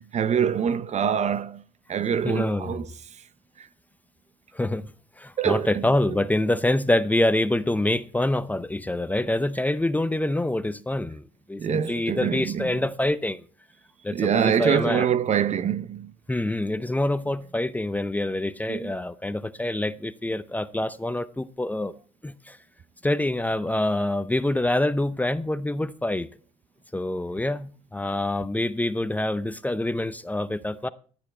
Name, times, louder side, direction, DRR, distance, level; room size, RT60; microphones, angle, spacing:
voice 1, 0.0-1.6 1.9-2.9 3.6-3.7 5.4-5.8 11.6-12.8 14.1-16.1 18.7-19.0, right 8 dB, 40° right, 0.6 m, -25 dB
voice 2, 2.2-2.9 4.5-4.9 5.2-11.2 11.5-13.4 14.0-15.1 16.3-21.9 22.2-22.6 23.0-26.3 26.9-30.9, left 1 dB, 10° left, 0.6 m, -26 dB
12.5 x 8.9 x 4.3 m
cardioid pair, 110°, 17 cm